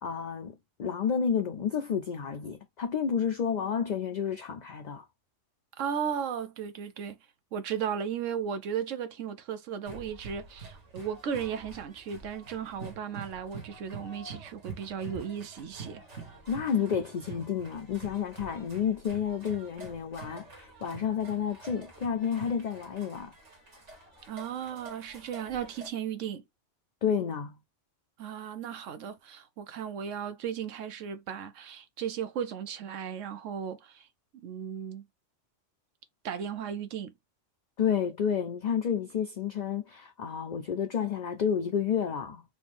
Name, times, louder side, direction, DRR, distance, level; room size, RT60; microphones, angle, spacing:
voice 1, 0.0-5.0 16.5-23.3 27.0-27.6 37.8-42.4, left 7 dB, 55° left, 0.5 m, -30 dB
voice 2, 5.8-7.2 7.5-16.0 24.3-26.4 28.2-34.1 34.3-35.0 36.2-37.1, right 8 dB, 85° right, 1.1 m, -35 dB
sound 1, 9.9-25.9, right 4 dB, 70° right, 1.7 m, -47 dB
4.2 x 2.8 x 3.4 m
omnidirectional pair, 1.3 m